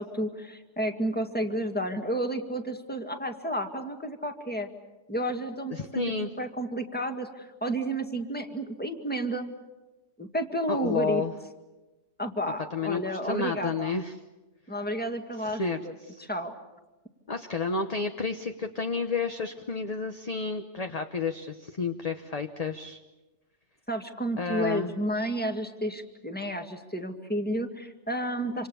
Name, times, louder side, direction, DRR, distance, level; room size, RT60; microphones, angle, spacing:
voice 1, 0.0-4.7 5.1-6.0 6.4-9.5 10.2-11.2 12.2-14.0 14.7-16.5 23.9-28.7, right 1 dB, 5° left, 5 dB, 1.9 m, -31 dB
voice 2, 5.7-6.3 10.7-11.3 12.7-14.1 15.4-15.8 16.1-16.2 17.3-23.0 24.4-24.9, left 4 dB, 30° left, 6 dB, 0.9 m, -31 dB
27.0 x 26.5 x 7.0 m, 1.1 s
omnidirectional pair, 1.6 m